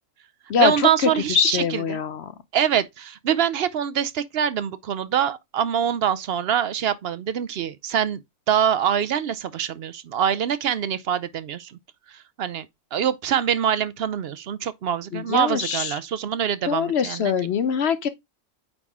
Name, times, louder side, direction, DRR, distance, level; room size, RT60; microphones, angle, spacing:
voice 1, 0.6-2.0 2.5-8.2 8.5-11.8 12.1-12.7 12.9-17.5, right 9 dB, 60° right, 0.7 m, -24 dB
voice 2, 1.3-2.2 15.1-15.9 16.7-18.1, left 7 dB, 60° left, 0.8 m, -23 dB
8.9 x 3.7 x 3.6 m
omnidirectional pair, 1.4 m